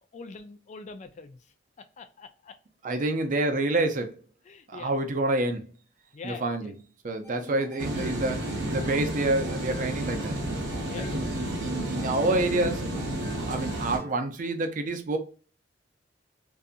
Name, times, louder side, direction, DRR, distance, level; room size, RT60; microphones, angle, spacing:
voice 1, 0.1-1.4 1.8-2.6 4.5-4.9 6.1-6.7 7.4-7.5 10.8-11.2, left 4 dB, 40° left, 0.3 m, -44 dB
voice 2, 2.8-4.2 4.7-5.7 6.2-6.7 7.0-10.3 10.9-13.2 13.5-15.2, right 2 dB, 45° right, 0.4 m, -28 dB
sound 1, 7.2-14.1, left 3 dB, 10° left, 0.9 m, -48 dB
sound 2, 7.8-14.0, right 1 dB, 75° right, 0.7 m, -31 dB
2.6 x 2.5 x 2.4 m
head